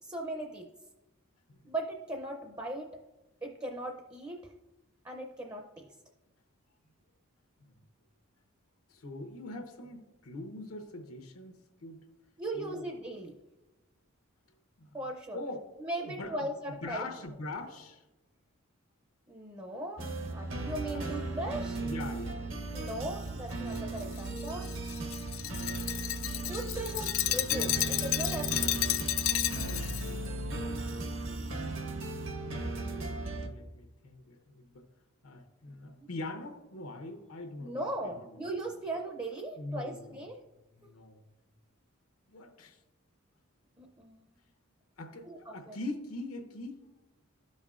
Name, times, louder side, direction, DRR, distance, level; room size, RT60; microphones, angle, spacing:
voice 1, 0.0-0.7 1.6-2.9 3.4-4.5 5.0-5.9 12.4-13.4 14.9-15.4 15.8-17.0 19.3-21.8 22.7-24.7 26.5-28.8 35.9-36.1 37.6-40.4 43.8-44.4 45.3-45.8, right 1 dB, 15° right, 3 dB, 0.5 m, -38 dB
voice 2, 8.9-12.0 12.5-12.9 14.8-14.9 15.3-15.6 16.0-16.5 16.8-18.0 20.9-21.2 21.8-22.5 29.6-30.9 32.3-34.9 35.2-38.5 39.6-40.2 40.8-41.2 42.3-42.8 45.0-46.8, left 2 dB, 85° left, 4 dB, 0.9 m, -43 dB
sound 1, 20.0-33.5, right 2 dB, 65° right, 0.9 m, -36 dB
Glass, 23.7-30.1, left 15 dB, 70° left, 0.3 m, -32 dB
12.5 x 5.4 x 2.4 m, 1.1 s
head